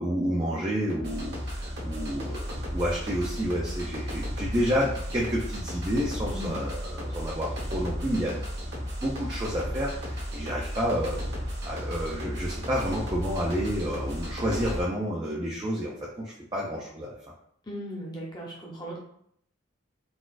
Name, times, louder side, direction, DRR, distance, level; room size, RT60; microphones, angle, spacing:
voice 1, 0.0-8.4 8.7-17.2, equal, 20° right, -4 dB, 0.4 m, -30 dB
sound 1, 0.9-14.8, equal, 50° right, 0.9 m, -34 dB
voice 2, 17.7-19.0, equal, 20° left, -3 dB, 0.7 m, -37 dB
3.9 x 2.4 x 2.4 m, 0.70 s
head